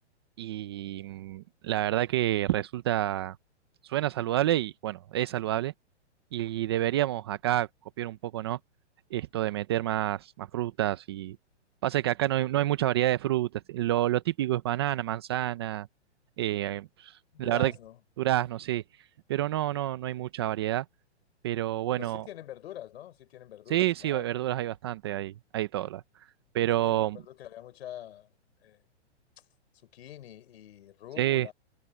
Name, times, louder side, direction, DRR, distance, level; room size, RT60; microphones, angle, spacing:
voice 1, 0.4-3.4 3.8-5.7 6.3-7.7 8.0-8.6 9.1-11.4 11.8-15.9 16.4-17.7 18.2-18.8 19.3-20.8 21.4-22.2 23.7-26.0 26.5-27.2 31.2-31.5, right 14 dB, 25° right, 0.4 m, -28 dB
voice 2, 17.3-18.0 21.9-24.2 26.8-28.3 28.6-28.8 29.8-31.5, left 12 dB, 60° left, 4.5 m, -45 dB
hypercardioid pair, 155°, 35 cm